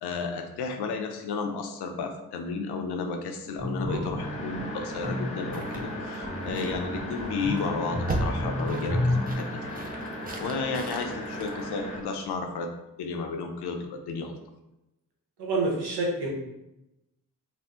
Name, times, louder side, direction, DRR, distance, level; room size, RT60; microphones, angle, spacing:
voice 1, 0.0-9.5 10.4-12.7 13.0-14.4, left 4 dB, 85° left, 5 dB, 0.5 m, -33 dB
sound 1, 3.6-9.3, left 1 dB, 50° right, 1.1 m, -31 dB
sound 2, 3.9-12.3, right 2 dB, 25° right, 0.5 m, -39 dB
sound 3, 4.2-12.0, equal, 15° left, 0.9 m, -37 dB
voice 2, 15.4-16.3, right 3 dB, 80° right, -2 dB, 0.9 m, -27 dB
2.5 x 2.1 x 3.4 m, 0.91 s
supercardioid pair, 40°, 39 cm